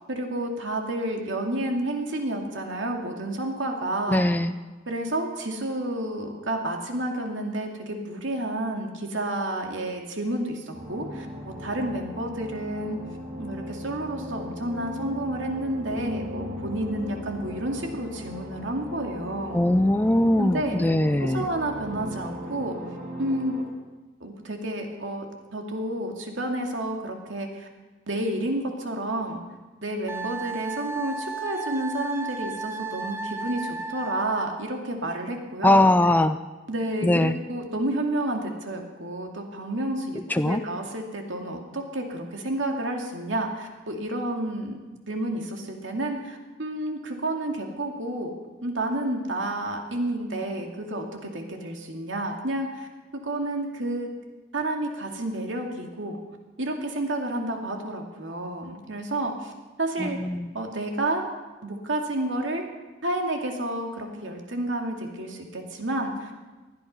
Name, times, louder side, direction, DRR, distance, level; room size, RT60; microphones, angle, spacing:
voice 1, 0.1-4.2 4.9-13.0 13.4-19.6 20.4-20.8 21.2-22.8 23.2-23.6 24.2-25.3 25.5-27.7 28.1-29.4 29.8-35.9 36.7-44.8 45.1-48.3 48.6-52.9 53.1-54.1 54.5-56.2 56.6-59.5 59.8-60.2 60.5-61.2 61.6-62.6 63.0-66.3, right 1 dB, 75° right, 2 dB, 2.5 m, -30 dB
voice 2, 4.1-4.5 19.5-21.4 35.6-36.4 37.0-37.4 40.3-40.6 60.0-60.5, left 1 dB, 10° left, 10 dB, 0.4 m, -21 dB
sound 1, 10.7-23.6, left 1 dB, 45° right, 5.1 m, -37 dB
Wind instrument woodwind instrument, 30.1-34.5, right 4 dB, 15° right, 0.9 m, -34 dB
19.5 x 12.5 x 5.6 m, 1.3 s
head